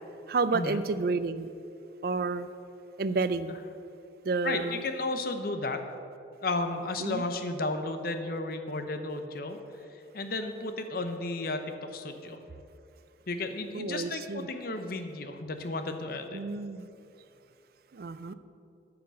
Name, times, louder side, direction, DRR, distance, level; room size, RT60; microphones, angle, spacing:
voice 1, 0.3-1.5 2.0-2.5 3.0-3.6 4.2-4.8 7.0-7.2 13.7-14.5 16.3-16.9 17.9-18.3, right 3 dB, 55° right, 13 dB, 0.4 m, -30 dB
voice 2, 4.4-5.9 6.4-9.6 9.9-12.4 13.3-16.4, left 2 dB, 55° left, 7 dB, 0.8 m, -33 dB
9.7 x 5.9 x 7.5 m, 2.6 s
head